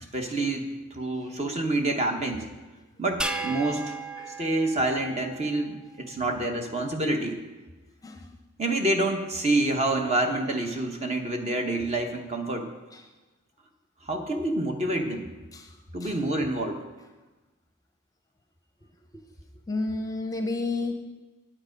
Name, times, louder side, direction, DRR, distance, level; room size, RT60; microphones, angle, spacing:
voice 1, 0.1-2.5 3.0-4.0 4.4-7.4 8.6-12.7 14.0-15.3 15.9-16.8, right 2 dB, 30° right, 4 dB, 1.0 m, -27 dB
sound 1, 3.2-5.8, right 2 dB, 5° right, 0.3 m, -35 dB
voice 2, 19.7-20.9, left 3 dB, 15° left, 5 dB, 0.7 m, -31 dB
8.9 x 8.8 x 5.1 m, 1.2 s
head